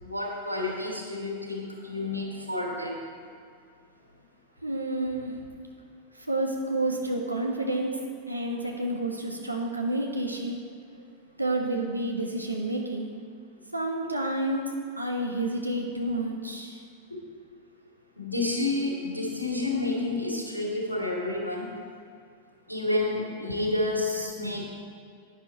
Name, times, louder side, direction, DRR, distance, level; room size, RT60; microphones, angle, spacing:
voice 1, 0.0-2.9 17.1-17.2 18.2-21.7 22.7-24.7, left 2 dB, 90° left, -2 dB, 2.4 m, -30 dB
voice 2, 4.6-5.4 6.3-8.0 8.3-10.6 11.4-13.1 13.7-16.8 23.5-23.6 24.4-24.7, right 1 dB, 85° right, 1 dB, 1.4 m, -30 dB
10.5 x 9.9 x 4.5 m, 2.2 s
figure-of-eight pair, 90°, 0 cm